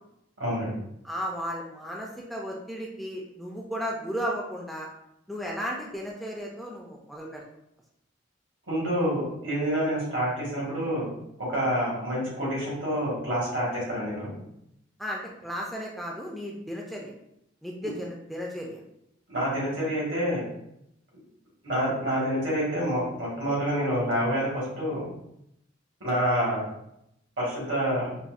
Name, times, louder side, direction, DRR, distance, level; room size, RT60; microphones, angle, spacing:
voice 1, 0.4-0.7 8.7-11.1 11.4-14.3 19.3-20.4 21.6-25.1 26.0-26.7 27.4-28.2, equal, 80° right, -5 dB, 1.4 m, -27 dB
voice 2, 1.0-4.9 5.3-7.4 15.0-17.1 17.6-18.8, equal, ahead, -2 dB, 0.3 m, -34 dB
4.0 x 2.0 x 2.4 m, 0.79 s
head